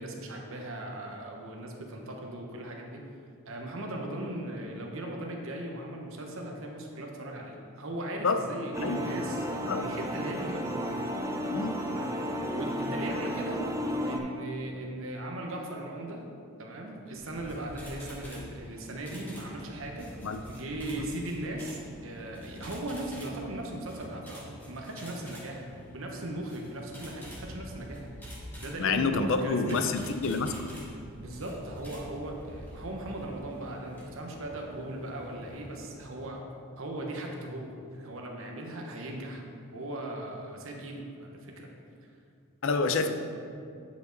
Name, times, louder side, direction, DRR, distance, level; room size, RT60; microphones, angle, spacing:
voice 1, 0.0-3.1 3.4-11.0 11.9-13.7 14.0-16.2 16.6-20.1 20.5-28.1 28.6-29.8 31.2-36.4 36.8-41.7 42.7-43.1, right 1 dB, 65° right, 1 dB, 0.9 m, -38 dB
sound 1, 8.7-14.2, equal, 15° right, 0.4 m, -33 dB
sound 2, 17.1-36.2, equal, 10° left, 1.5 m, -46 dB
voice 2, 28.8-30.5 42.6-43.1, left 4 dB, 60° left, 8 dB, 0.4 m, -28 dB
8.6 x 5.2 x 3.9 m, 2.4 s
head